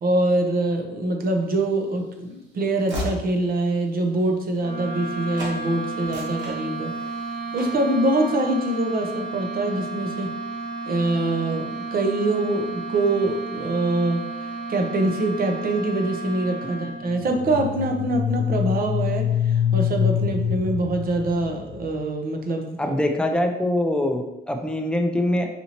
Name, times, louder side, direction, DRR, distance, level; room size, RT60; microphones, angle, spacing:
voice 1, 0.0-6.9 7.5-10.3 10.9-22.9, right 2 dB, 50° right, 3 dB, 0.6 m, -24 dB
Train / Slam, 1.5-5.1 5.3-5.6 5.9-7.1 7.5-7.9, left 1 dB, 70° right, 1.3 m, -36 dB
sound 1, 4.6-17.3, right 4 dB, 25° left, 1.2 m, -33 dB
sound 2, 17.2-22.1, left 8 dB, 85° left, 0.4 m, -25 dB
voice 2, 22.8-25.5, left 1 dB, 5° left, 4 dB, 0.4 m, -23 dB
4.2 x 2.7 x 2.8 m, 0.94 s
cardioid pair, 90°, 20 cm